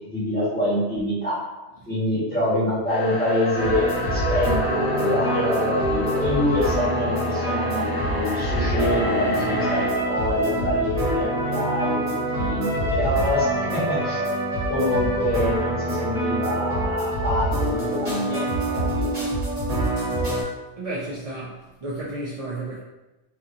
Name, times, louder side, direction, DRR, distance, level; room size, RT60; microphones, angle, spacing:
voice 1, 0.0-1.4 1.8-14.2 14.7-19.2, left 1 dB, 10° left, -12 dB, 1.5 m, -26 dB
sound 1, 2.9-9.9, left 2 dB, 80° left, 0.9 m, -30 dB
sound 2, 3.5-20.4, right 1 dB, 35° right, 1.1 m, -25 dB
voice 2, 20.8-22.8, right 2 dB, 60° right, -7 dB, 0.3 m, -32 dB
2.6 x 2.6 x 2.6 m, 1.0 s
omnidirectional pair, 1.1 m